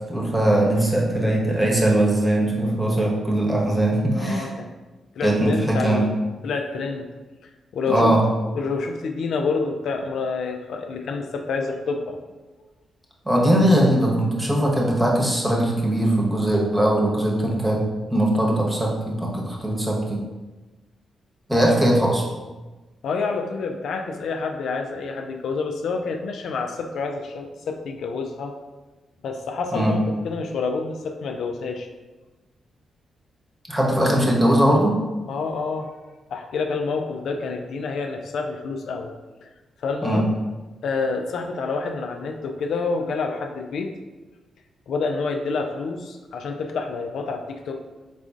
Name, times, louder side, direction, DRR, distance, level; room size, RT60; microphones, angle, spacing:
voice 1, 0.1-4.5 5.2-6.1 7.9-8.2 13.2-17.8 18.1-20.2 21.5-22.3 29.7-30.0 33.7-35.0 40.0-40.2, right 1 dB, 15° right, -2 dB, 1.0 m, -20 dB
voice 2, 4.2-4.7 5.2-6.1 6.4-7.1 7.4-8.2 8.5-12.2 21.5-21.8 23.0-28.5 29.2-31.9 35.3-35.9 36.3-39.1 39.4-39.5 39.8-40.3 40.8-43.9 44.9-47.8, left 4 dB, 75° left, 4 dB, 0.4 m, -28 dB
4.0 x 3.8 x 2.4 m, 1.2 s
cardioid pair, 65°, 0 cm